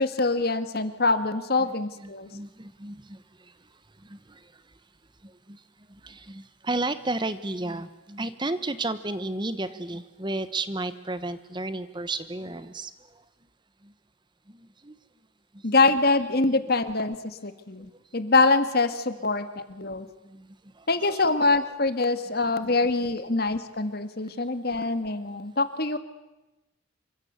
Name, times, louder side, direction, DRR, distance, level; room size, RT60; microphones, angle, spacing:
voice 1, 0.0-2.3 15.6-20.1 20.9-26.0, left 3 dB, 50° left, 11 dB, 1.9 m, -24 dB
voice 2, 1.9-3.2 4.0-4.4 5.2-5.6 6.0-12.9 13.8-13.9 14.5-15.0 20.2-20.5 20.8-21.2 24.3-24.4, right 2 dB, 25° right, 14 dB, 1.1 m, -33 dB
27.5 x 24.0 x 8.1 m, 1.0 s
head